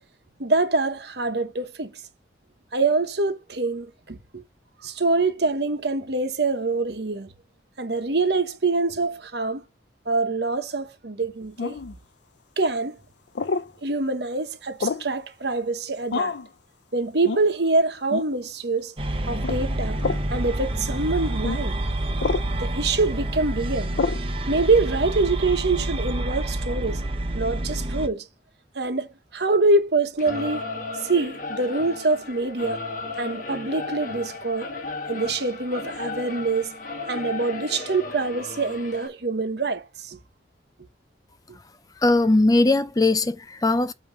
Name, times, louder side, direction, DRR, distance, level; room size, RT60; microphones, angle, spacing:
voice 1, 0.4-1.9 2.7-4.4 4.8-7.3 7.8-9.6 10.1-11.8 12.6-13.0 13.8-16.3 16.9-18.9 19.3-20.0 20.3-21.8 22.6-23.9 24.5-27.0 27.3-28.3 28.7-29.1 29.3-30.6 31.0-32.8 33.2-34.7 35.1-36.7 37.1-40.2, right 3 dB, 65° right, 1.2 m, -25 dB
sound 1, 11.6-11.9 13.4-13.7 14.8-15.1 16.1-16.5 17.2-17.5 18.1-18.3 19.4-19.6 20.0-20.3 21.4-21.6 22.2-22.5 24.0-24.2, left 4 dB, 75° left, 0.5 m, -27 dB
sound 2, 19.0-28.1, right 1 dB, 30° right, 0.9 m, -28 dB
Singing / Musical instrument, 30.2-39.1, left 3 dB, 45° left, 1.2 m, -35 dB
voice 2, 42.0-43.9, left 2 dB, 20° left, 0.5 m, -19 dB
8.9 x 3.1 x 6.1 m
head